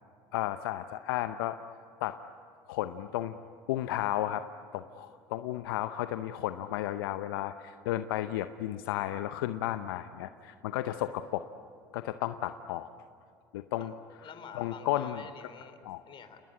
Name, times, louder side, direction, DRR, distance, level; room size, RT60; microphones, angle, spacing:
voice 1, 0.3-1.6 2.0-2.2 2.7-3.4 3.7-4.5 4.7-11.5 11.9-12.9 13.5-13.9 14.5-15.2 15.8-16.0, left 13 dB, 75° left, 10 dB, 0.8 m, -33 dB
voice 2, 14.2-15.8 16.1-16.4, left 7 dB, 45° left, 10 dB, 3.5 m, -47 dB
29.5 x 20.0 x 9.9 m, 2.4 s
hypercardioid pair, 75°, 12 cm